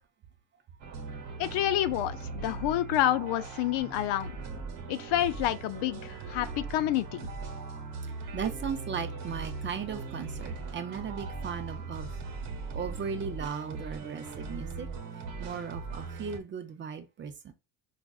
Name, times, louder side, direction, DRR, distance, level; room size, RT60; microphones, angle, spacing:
sound 1, 0.8-16.4, right 4 dB, 75° right, 1.1 m, -39 dB
voice 1, 1.4-4.3 4.9-7.3, left 13 dB, 80° left, 0.6 m, -28 dB
voice 2, 8.3-12.2 12.7-14.9 15.4-17.5, right 7 dB, 30° right, 0.4 m, -37 dB
4.9 x 2.4 x 2.3 m
cardioid pair, 145°, 40 cm